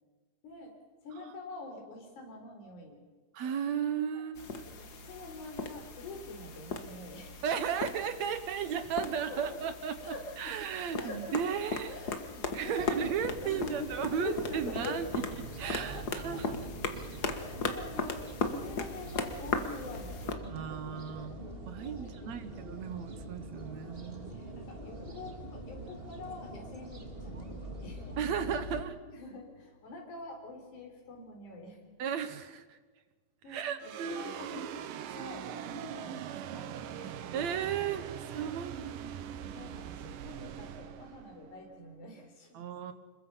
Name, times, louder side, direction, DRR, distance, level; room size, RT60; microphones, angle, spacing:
voice 1, 1.0-3.0 4.1-4.2 4.7-7.7 9.2-9.6 10.0-10.5 10.9-11.4 11.9-15.0 15.8-16.4 17.2-20.5 21.1-21.2 21.9-22.3 24.3-28.5 29.1-31.8 33.4-37.2 38.7-38.8 39.4-42.7, left 3 dB, 60° left, 1 dB, 5.6 m, -45 dB
voice 2, 3.3-4.7 7.4-11.9 12.5-15.2 15.6-16.6 20.5-21.4 21.7-24.4 28.2-29.0 32.0-32.8 33.5-34.3 37.3-38.9 42.5-42.9, right 8 dB, 65° right, 10 dB, 2.2 m, -35 dB
sound 1, 4.3-20.3, left 4 dB, 45° left, 1.3 m, -38 dB
sound 2, 12.8-28.8, right 1 dB, 20° right, 1.6 m, -44 dB
sound 3, 33.8-42.3, right 10 dB, 80° right, 2.6 m, -42 dB
26.5 x 22.0 x 5.7 m, 1.4 s
omnidirectional pair, 3.9 m